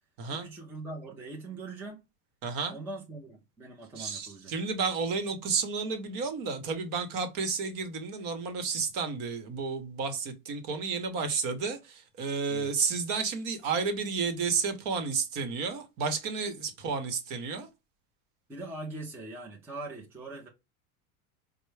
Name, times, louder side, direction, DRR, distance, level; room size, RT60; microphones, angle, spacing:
voice 1, 0.3-2.0 2.7-4.5 12.5-12.8 18.5-20.5, right 2 dB, 5° right, 0.4 m, -42 dB
voice 2, 2.4-2.8 4.0-17.7, right 5 dB, 45° right, 1.0 m, -31 dB
4.4 x 2.1 x 3.2 m
supercardioid pair, 135°, 45 cm